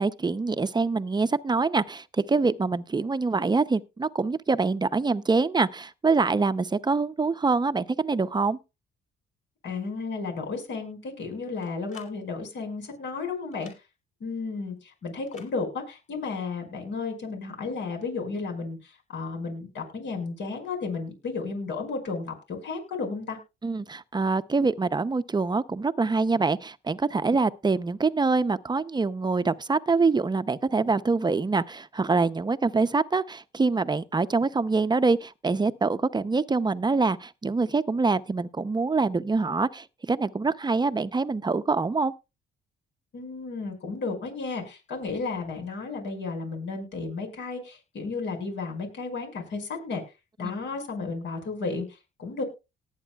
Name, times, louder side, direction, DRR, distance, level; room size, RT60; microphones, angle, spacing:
voice 1, 0.0-8.6 23.6-42.1 50.4-50.5, right 4 dB, 20° right, 0.7 m, -25 dB
voice 2, 9.6-13.7 14.2-23.4 43.1-50.0 50.4-52.4, left 4 dB, 65° left, 5.4 m, -33 dB
sound 1, 11.6-12.1 13.5-13.8 15.3-15.5, left 4 dB, 40° left, 4.1 m, -50 dB
18.5 x 9.0 x 2.4 m
cardioid pair, 90°, 20 cm